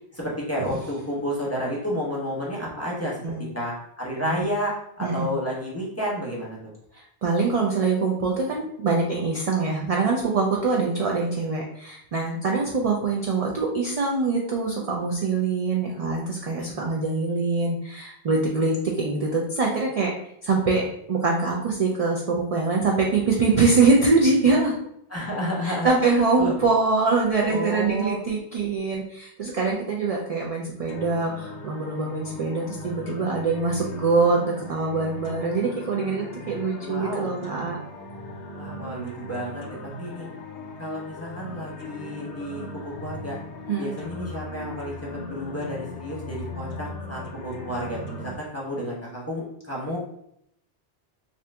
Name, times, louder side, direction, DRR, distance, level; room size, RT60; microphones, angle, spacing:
voice 1, 0.1-3.2 3.5-6.7 25.1-26.6 27.5-28.2 36.8-37.3 38.5-39.6 40.0-40.3 40.8-43.4 43.8-45.0 45.3-50.0, equal, 15° left, -5 dB, 0.7 m, -31 dB
voice 2, 6.9-20.1 20.4-20.8 21.1-24.8 25.6-37.8 43.7-43.9, right 4 dB, 60° right, -1 dB, 0.4 m, -24 dB
sound 1, 30.9-48.3, left 2 dB, 80° left, 0.9 m, -38 dB
2.8 x 2.5 x 3.3 m, 0.73 s
omnidirectional pair, 1.1 m